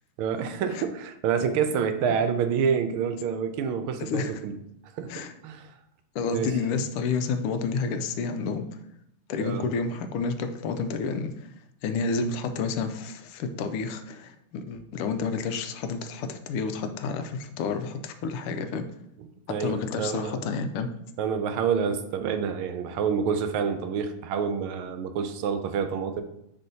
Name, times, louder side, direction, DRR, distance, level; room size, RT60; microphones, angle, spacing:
voice 1, 0.2-4.6 4.9-5.7 6.3-6.5 9.4-9.7 19.5-20.4 21.2-26.2, right 7 dB, 80° right, 8 dB, 1.4 m, -28 dB
voice 2, 4.0-4.4 5.1-5.3 6.1-8.6 9.3-11.5 11.8-18.8 19.6-20.9, left 4 dB, 90° left, 8 dB, 1.6 m, -30 dB
9.9 x 3.7 x 2.7 m, 0.78 s
omnidirectional pair, 2.4 m